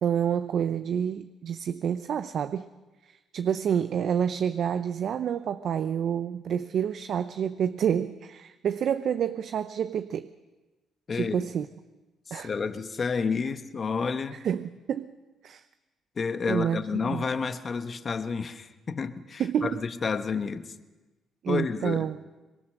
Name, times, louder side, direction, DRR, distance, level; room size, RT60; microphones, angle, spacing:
voice 1, 0.0-2.7 3.0-10.3 11.1-11.7 12.3-12.5 14.4-15.1 15.4-15.6 16.5-17.2 19.4-19.8 21.4-22.2, right 8 dB, 65° right, 11 dB, 0.7 m, -28 dB
voice 2, 11.1-11.5 12.3-14.4 16.2-20.7 21.5-22.1, left 5 dB, 40° left, 9 dB, 1.3 m, -30 dB
24.0 x 22.0 x 6.6 m, 1.2 s
cardioid pair, 100°, 0 cm